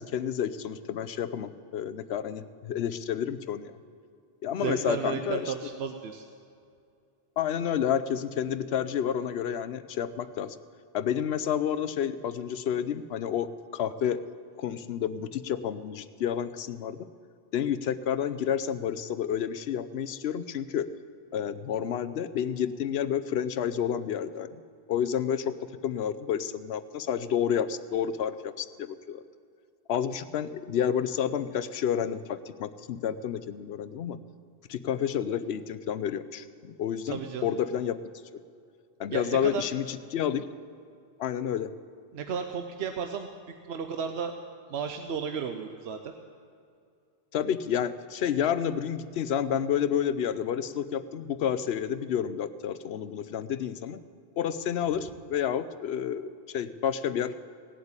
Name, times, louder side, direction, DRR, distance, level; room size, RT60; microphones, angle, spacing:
voice 1, 0.0-3.7 4.4-5.5 7.4-10.6 10.9-14.2 14.6-17.0 17.5-20.9 21.3-24.6 24.9-25.5 25.8-29.2 29.9-34.2 34.7-38.0 39.0-40.5 41.2-41.7 47.3-54.0 54.4-57.5, left 9 dB, 85° left, 13 dB, 0.9 m, -30 dB
voice 2, 4.6-6.2 37.1-37.5 39.1-39.6 42.1-43.3 43.7-44.3 44.7-46.1, right 6 dB, 85° right, 6 dB, 1.0 m, -33 dB
17.5 x 8.0 x 8.8 m, 2.4 s
omnidirectional pair, 1.0 m